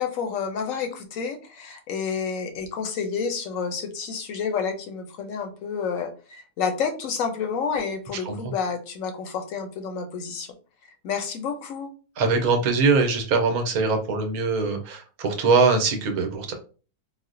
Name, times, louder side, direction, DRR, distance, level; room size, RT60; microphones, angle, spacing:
voice 1, 0.0-10.5 11.0-11.9, left 6 dB, 70° left, 5 dB, 0.9 m, -29 dB
voice 2, 12.2-16.5, right 4 dB, 75° right, 4 dB, 1.1 m, -22 dB
4.2 x 2.0 x 2.5 m, 0.37 s
omnidirectional pair, 1.6 m